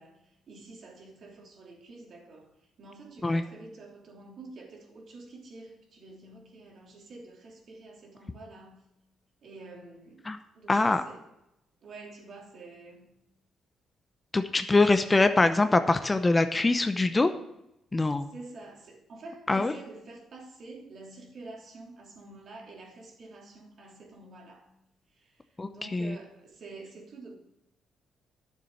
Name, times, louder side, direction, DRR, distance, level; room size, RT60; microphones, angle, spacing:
voice 1, 0.0-2.5 2.8-8.8 9.4-11.2 11.8-13.1 18.2-24.7 25.2-25.4 25.7-27.3, right 3 dB, 55° right, 0 dB, 3.0 m, -48 dB
voice 2, 10.7-11.0 14.3-17.3 17.9-18.3 19.5-19.7 25.6-26.2, left 2 dB, 20° left, 10 dB, 0.7 m, -23 dB
10.0 x 7.1 x 6.3 m, 0.85 s
cardioid pair, 90°, 0 cm